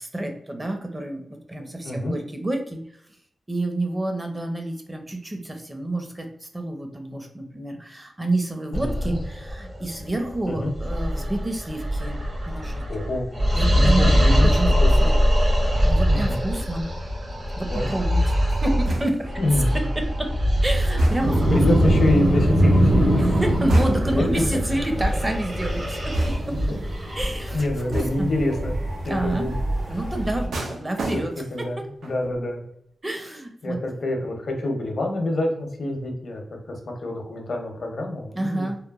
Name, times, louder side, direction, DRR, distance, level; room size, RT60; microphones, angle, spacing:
voice 1, 0.0-2.8 3.5-12.2 12.4-12.8 13.5-14.2 14.4-14.7 15.0-15.1 15.8-16.9 17.6-18.3 18.6-19.3 19.7-20.3 20.6-21.9 23.4-26.5 27.1-28.3 29.1-29.5 29.9-31.3 33.0-33.8 38.3-38.8, right 1 dB, 25° right, 4 dB, 0.5 m, -29 dB
voice 2, 1.7-2.2 8.7-9.2 10.5-10.7 12.9-13.2 13.7-14.5 14.8-14.9 15.2-15.3 16.1-16.4 17.7-17.9 19.4-19.8 20.9-21.0 21.5-23.2 27.5-28.8 29.0-29.5 29.9-30.1 31.5-32.6 33.6-38.7, left 1 dB, 70° left, 2 dB, 0.6 m, -27 dB
sound 1, 8.7-28.4, equal, 50° right, 0.9 m, -24 dB
sound 2, 18.8-19.4 21.0-21.6 23.7-24.3 26.1-26.7 27.9-28.4 30.5-31.6 32.0-32.4, right 1 dB, 90° right, 0.5 m, -27 dB
sound 3, 21.2-30.5, right 1 dB, 70° right, 1.3 m, -23 dB
2.9 x 2.2 x 2.3 m, 0.71 s
cardioid pair, 60°, 0 cm